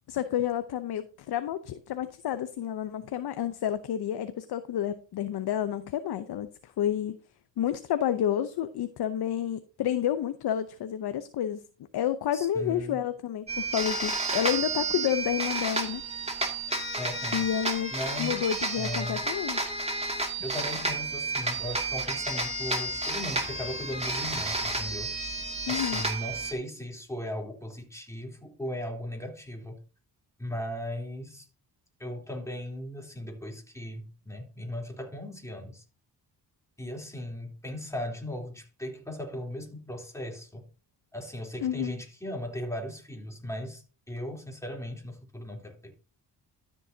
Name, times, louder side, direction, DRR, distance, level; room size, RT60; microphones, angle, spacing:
voice 1, 0.1-7.2 7.6-11.6 11.9-16.0 17.3-17.9 18.2-19.6 20.1-20.3 25.7-26.0 41.6-41.9, left 10 dB, 65° left, 0.8 m, -30 dB
voice 2, 12.3-13.0 17.0-17.5 17.9-18.4 18.8-19.2 20.4-25.1 25.7-29.8 30.4-31.5 32.0-35.8 36.8-40.7 41.1-45.9, left 1 dB, 5° left, 3.4 m, -37 dB
sound 1, 13.5-26.5, right 2 dB, 15° right, 2.3 m, -31 dB
12.5 x 7.0 x 2.8 m
supercardioid pair, 60°, 42 cm